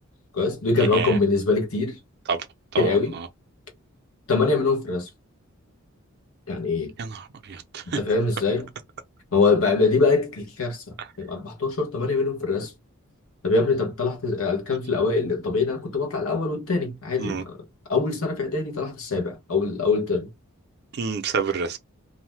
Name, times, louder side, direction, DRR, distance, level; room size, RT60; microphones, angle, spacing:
voice 1, 0.3-2.0 2.8-3.1 4.3-5.1 6.5-6.9 7.9-8.7 9.3-12.7 13.4-17.5 17.9-20.3, left 4 dB, 70° left, 0.9 m, -23 dB
voice 2, 2.7-3.3 7.0-8.0 11.0-11.1 17.2-17.4 20.9-21.8, right 5 dB, 50° right, 0.5 m, -28 dB
2.5 x 2.1 x 3.2 m
head